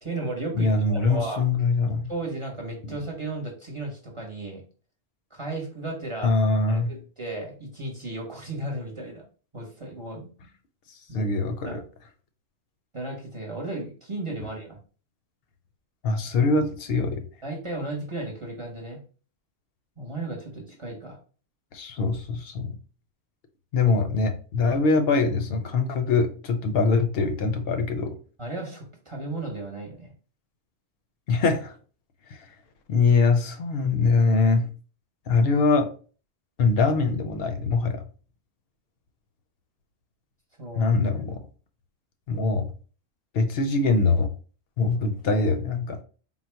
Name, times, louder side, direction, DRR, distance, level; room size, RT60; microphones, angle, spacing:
voice 1, 0.0-0.7 1.0-1.4 2.1-4.6 5.3-6.3 6.7-9.2 9.5-10.3 11.1-11.3 11.6-11.8 12.9-14.8 17.4-19.0 20.0-21.2 28.4-30.1 40.6-41.2, right 2 dB, 30° right, 0.9 m, -34 dB
voice 2, 0.5-2.1 2.8-2.9 6.2-6.9 11.1-11.8 16.0-17.2 21.7-22.8 23.7-28.2 31.3-31.8 32.3-32.5 32.9-34.7 35.3-35.9 36.6-38.0 40.8-41.4 42.3-42.7 43.3-44.3 44.8-46.0, left 3 dB, 65° left, 0.8 m, -23 dB
3.9 x 2.0 x 4.3 m
omnidirectional pair, 1.1 m